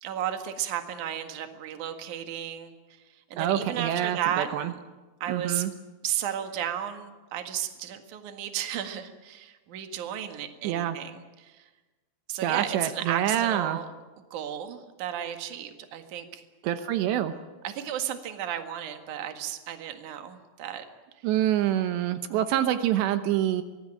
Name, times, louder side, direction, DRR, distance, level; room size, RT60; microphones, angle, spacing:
voice 1, 0.0-4.8 5.2-5.6 6.0-11.7 12.3-13.9 14.3-16.5 17.6-20.8 21.2-21.3, right 10 dB, 55° right, 6 dB, 2.7 m, -34 dB
voice 2, 3.4-4.7 5.3-5.7 10.6-11.0 12.4-13.8 16.6-17.3 21.2-23.6, right 11 dB, 80° right, 9 dB, 3.1 m, -26 dB
25.0 x 19.5 x 9.1 m, 1.2 s
omnidirectional pair, 5.1 m